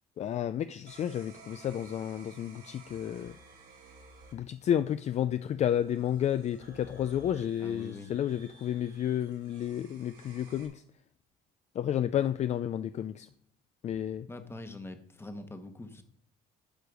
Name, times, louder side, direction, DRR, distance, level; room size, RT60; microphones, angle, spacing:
voice 1, 0.2-3.3 4.3-10.8 11.8-13.3 13.8-14.3, left 10 dB, 40° left, 0.4 m, -31 dB
sound 1, 0.9-10.7, right 4 dB, 75° right, 3.9 m, -55 dB
voice 2, 7.6-8.1 14.3-16.0, left 2 dB, 15° left, 1.1 m, -43 dB
11.5 x 4.8 x 5.2 m
cardioid pair, 110°, 17 cm